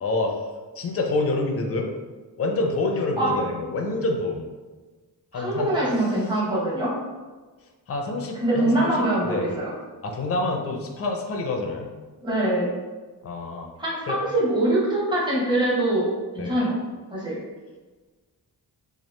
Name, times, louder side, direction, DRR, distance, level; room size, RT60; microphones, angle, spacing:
voice 1, 0.0-0.4 0.8-1.9 2.4-4.5 5.3-5.8 7.9-9.5 10.0-11.9 13.2-13.7 14.1-14.2 16.4-16.5, left 2 dB, 35° left, 1 dB, 0.4 m, -27 dB
voice 2, 5.3-6.9 8.3-9.7 12.2-12.7 13.8-16.1 16.3-16.8 17.1-17.4, right 1 dB, 10° right, -6 dB, 0.8 m, -23 dB
2.9 x 2.4 x 3.1 m, 1.3 s
wide cardioid pair, 135°, 41 cm